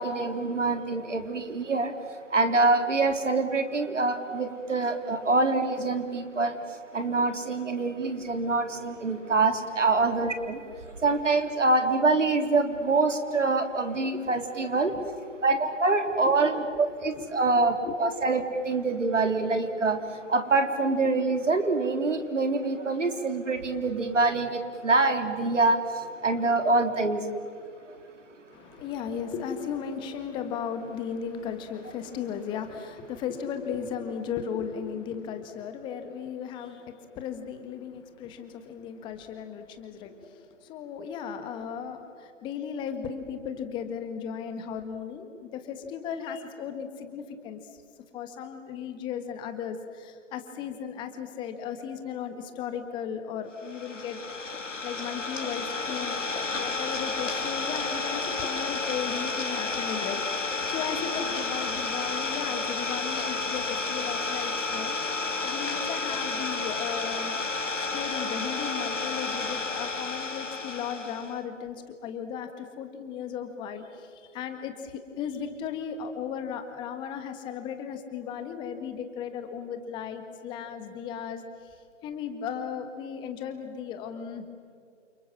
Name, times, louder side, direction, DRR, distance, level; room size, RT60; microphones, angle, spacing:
voice 1, 0.0-1.9 2.3-6.6 6.9-14.9 15.4-20.0 20.3-27.3 27.9-28.0, right 3 dB, 75° right, 7 dB, 3.6 m, -25 dB
voice 2, 28.5-47.8 48.1-54.2 54.8-56.2 56.5-64.9 65.4-67.3 67.8-81.7 82.0-84.4, left 7 dB, 10° left, 8 dB, 1.6 m, -36 dB
Idling, 53.6-71.3, left 3 dB, 75° left, 3.2 m, -31 dB
29.0 x 26.5 x 7.6 m, 2.3 s
figure-of-eight pair, 145°, 37 cm